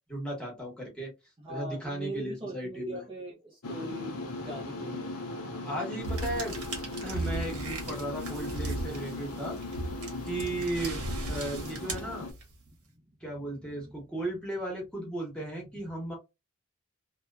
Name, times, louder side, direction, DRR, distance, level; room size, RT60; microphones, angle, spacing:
voice 1, 0.1-1.1 1.5-3.0 5.6-6.6 7.0-9.5 10.2-12.3 13.2-16.1, right 1 dB, 5° left, 1.0 m, -35 dB
voice 2, 1.4-5.2 10.5-10.7 12.7-14.0, right 1 dB, 20° right, 0.5 m, -42 dB
sound 1, 3.6-12.3, left 2 dB, 85° left, 0.6 m, -38 dB
sound 2, 6.0-12.7, right 2 dB, 80° right, 1.0 m, -37 dB
2.8 x 2.2 x 2.3 m
head